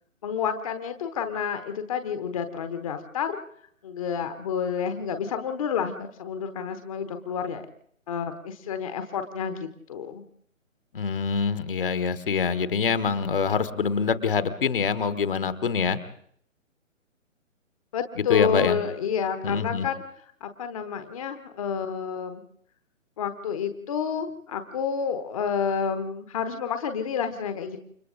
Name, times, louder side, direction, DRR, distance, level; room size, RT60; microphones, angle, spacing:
voice 1, 0.2-3.4 3.8-7.7 8.1-10.2 17.9-20.0 20.4-22.4 23.2-27.8, left 7 dB, 25° left, 9 dB, 1.1 m, -29 dB
voice 2, 10.9-16.0 18.2-18.8 19.4-19.9, left 6 dB, 40° left, 13 dB, 1.3 m, -25 dB
29.5 x 25.0 x 3.9 m, 0.64 s
figure-of-eight pair, 140°, 40 cm